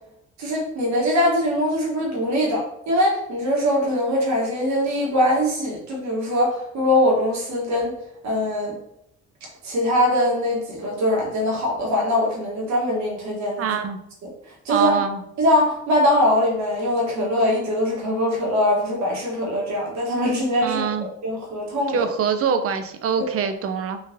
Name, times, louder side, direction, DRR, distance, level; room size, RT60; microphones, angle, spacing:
voice 1, 0.4-7.9 8.2-8.8 9.6-13.7 14.2-14.3 14.6-14.9 15.4-22.0, left 1 dB, 65° right, -3 dB, 1.3 m, -22 dB
voice 2, 13.6-14.0 14.7-15.2 20.6-21.1 21.9-24.0, right 7 dB, 50° right, 8 dB, 0.5 m, -24 dB
3.8 x 2.4 x 2.6 m, 0.77 s
cardioid pair, 90°, 30 cm